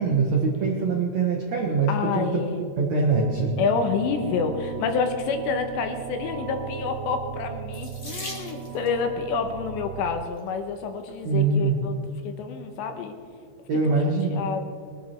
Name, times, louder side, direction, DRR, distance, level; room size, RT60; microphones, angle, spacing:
voice 1, 0.0-2.4 2.8-3.5 11.2-11.8 13.7-14.4, right 4 dB, 70° right, -1 dB, 1.7 m, -23 dB
voice 2, 1.9-2.6 3.6-11.9 12.2-13.2 13.9-14.0 14.3-14.6, left 5 dB, 75° left, 6 dB, 3.1 m, -28 dB
sound 1, 3.1-10.3, right 10 dB, 85° right, 2.4 m, -36 dB
Water tap faucet / Sink (filling or washing), 7.7-9.0 10.0-10.4 11.1-11.2 11.5-11.6, left 1 dB, 50° left, 0.9 m, -39 dB
22.0 x 13.0 x 4.5 m, 2.3 s
omnidirectional pair, 5.7 m